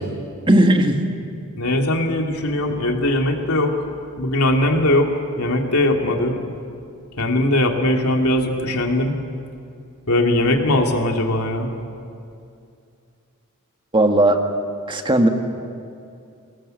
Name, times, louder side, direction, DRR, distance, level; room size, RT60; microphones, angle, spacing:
voice 1, 0.5-1.0 13.9-14.4 14.9-15.3, right 1 dB, 20° right, 4 dB, 1.7 m, -15 dB
voice 2, 1.6-3.8 4.2-6.4 7.2-9.2 10.1-11.7, left 1 dB, 85° left, 2 dB, 2.8 m, -20 dB
27.0 x 19.5 x 7.9 m, 2.5 s
head